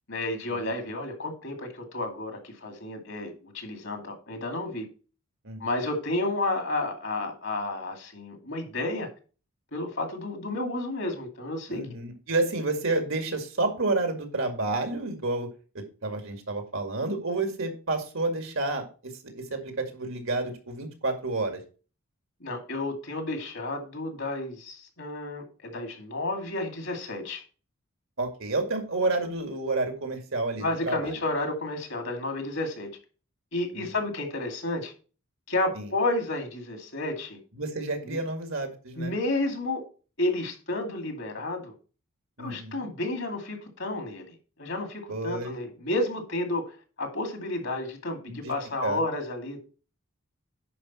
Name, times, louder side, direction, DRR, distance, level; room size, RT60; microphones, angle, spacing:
voice 1, 0.1-4.9 5.6-9.1 9.7-11.8 22.4-27.4 30.6-32.9 33.5-34.9 35.5-37.4 38.0-38.2 39.0-39.8 40.2-41.7 42.4-49.6, left 2 dB, 60° left, 2.4 m, -31 dB
voice 2, 11.7-15.5 15.7-21.6 28.2-31.1 35.8-35.9 37.6-39.1 42.4-42.8 45.1-45.5 48.3-48.5 48.8-49.0, right 2 dB, 65° right, 2.1 m, -30 dB
10.0 x 5.4 x 4.3 m
head